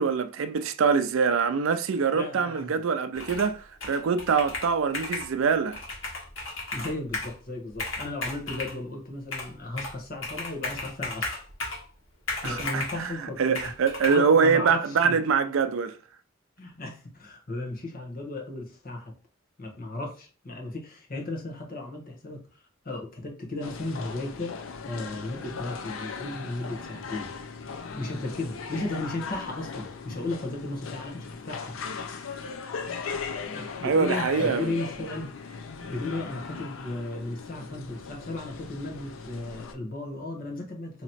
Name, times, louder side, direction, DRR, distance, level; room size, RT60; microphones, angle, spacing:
voice 1, 0.0-5.8 12.4-13.1 13.4-16.0 33.8-34.7, right 5 dB, 80° right, 0.4 m, -24 dB
voice 2, 2.1-2.7 6.7-11.4 12.4-15.2 16.6-19.1 19.6-22.4 22.8-27.3 27.9-31.7 33.5-35.3 35.9-41.0, left 2 dB, 45° left, 1.1 m, -35 dB
Computer keyboard, 3.1-3.5 3.8-5.3 5.7-7.3 7.7-8.8 9.3-10.0 10.2-11.9 12.3-13.0 13.5-14.1, left 3 dB, 75° left, 1.5 m, -34 dB
sound 1, 23.6-39.7, left 5 dB, 90° left, 0.5 m, -38 dB
3.0 x 2.9 x 4.1 m
head